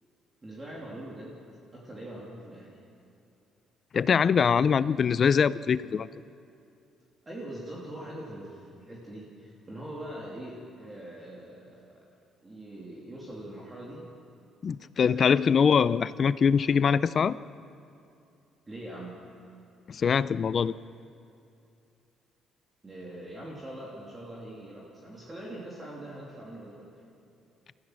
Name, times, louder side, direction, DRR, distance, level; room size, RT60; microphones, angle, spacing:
voice 1, 0.4-1.4 1.7-2.8 4.4-4.8 7.2-12.0 12.4-14.1 15.0-15.6 18.7-19.2 22.8-26.9, right 1 dB, 15° right, -5 dB, 2.7 m, -42 dB
voice 2, 3.9-6.1 14.6-17.3 19.9-20.7, left 6 dB, 35° left, 17 dB, 0.4 m, -23 dB
29.5 x 15.0 x 6.3 m, 2.6 s
cardioid pair, 175°, 0 cm